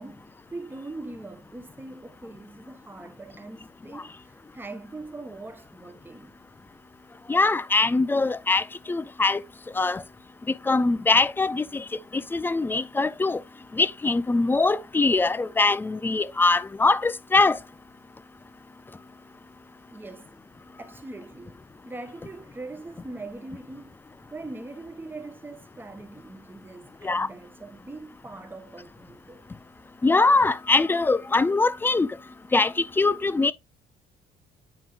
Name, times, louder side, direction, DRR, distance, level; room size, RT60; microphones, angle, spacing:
voice 1, 0.0-6.4 19.9-20.4 20.8-23.9 24.3-29.5, right 2 dB, 10° right, 0.8 m, -41 dB
voice 2, 7.3-9.4 9.8-10.0 10.7-11.8 12.1-13.4 13.7-17.6 27.0-27.3 30.0-32.1 32.5-33.5, left 3 dB, 10° left, 0.3 m, -22 dB
9.1 x 4.6 x 2.4 m
cardioid pair, 110°, 17 cm